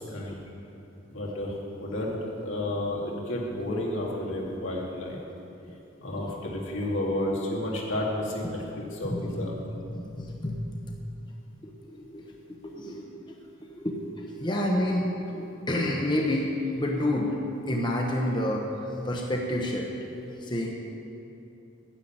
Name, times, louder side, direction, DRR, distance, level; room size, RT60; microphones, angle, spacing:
voice 1, 1.1-2.2 2.4-5.2 6.0-9.5, left 1 dB, 85° left, -3 dB, 2.3 m, -31 dB
voice 2, 9.8-11.0 11.6-13.4 13.6-17.4 17.7-19.9 20.4-20.7, left 1 dB, 25° left, 0 dB, 0.9 m, -29 dB
10.0 x 7.5 x 8.7 m, 2.8 s
head